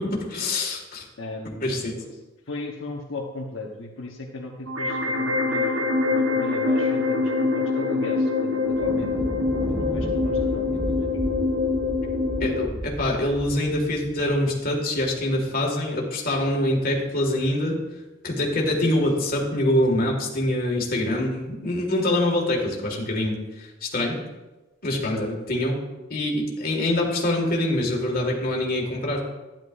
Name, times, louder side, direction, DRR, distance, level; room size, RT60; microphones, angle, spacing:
voice 1, 0.0-1.0 1.6-1.9 12.4-17.8 18.2-24.2 24.8-25.8 26.1-29.2, left 1 dB, 45° left, 0 dB, 2.0 m, -25 dB
voice 2, 1.2-1.7 2.0-2.2 2.5-9.3 9.7-11.1 25.0-25.2, left 2 dB, 80° left, -1 dB, 1.1 m, -36 dB
sound 1, 4.7-12.7, left 3 dB, 75° right, 1.3 m, -24 dB
Thunder, 8.6-15.3, right 1 dB, 15° right, 0.8 m, -34 dB
12.0 x 10.5 x 2.6 m, 1.1 s
head